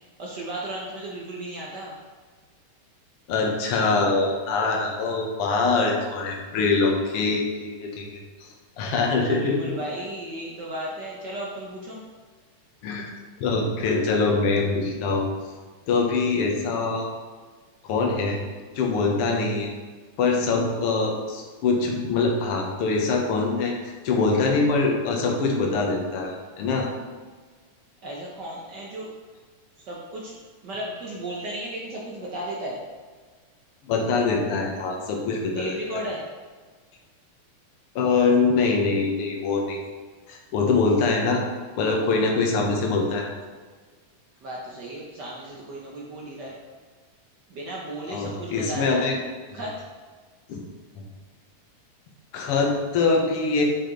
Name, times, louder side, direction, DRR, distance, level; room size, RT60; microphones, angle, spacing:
voice 1, 0.2-2.0 9.0-12.0 28.0-29.1 29.9-30.3 30.6-32.8 35.6-36.2 44.4-46.5 47.5-49.0 49.5-49.8, right 1 dB, 75° right, -4 dB, 0.9 m, -34 dB
voice 2, 3.3-8.5 8.8-9.7 12.8-13.1 13.4-15.3 15.9-17.1 17.8-18.4 18.7-19.7 20.2-26.9 33.9-36.0 37.9-39.8 40.3-41.4 41.8-43.3 48.1-49.2 49.5-49.6 50.5-50.6 52.3-53.6, left 4 dB, 60° left, 0 dB, 1.7 m, -24 dB
8.6 x 4.9 x 3.9 m, 1.5 s
omnidirectional pair, 3.4 m